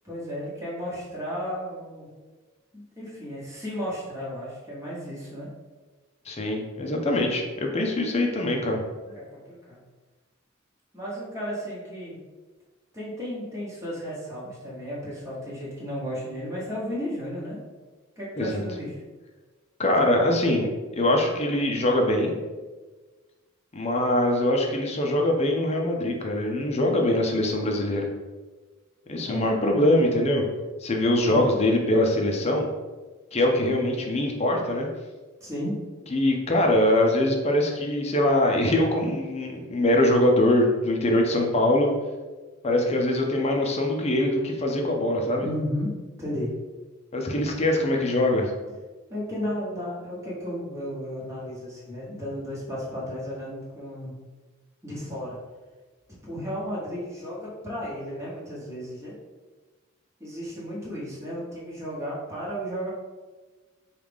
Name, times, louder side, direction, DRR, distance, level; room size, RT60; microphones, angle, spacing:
voice 1, 0.0-2.1 2.7-5.5 9.1-9.8 10.9-12.2 12.9-17.6 18.2-19.0 29.1-29.5 31.3-31.4 35.4-35.7 45.4-45.9 46.2-46.5 49.1-54.1 54.8-55.4 56.2-59.1 60.2-62.9, equal, 15° right, -7 dB, 1.2 m, -34 dB
voice 2, 6.3-8.8 18.4-18.6 19.8-20.7 21.0-22.3 23.7-28.1 29.1-30.4 30.8-32.7 33.3-34.9 36.1-41.9 42.6-45.5 47.1-48.5, left 1 dB, 30° left, 1 dB, 0.5 m, -23 dB
4.8 x 2.4 x 3.5 m, 1.3 s
head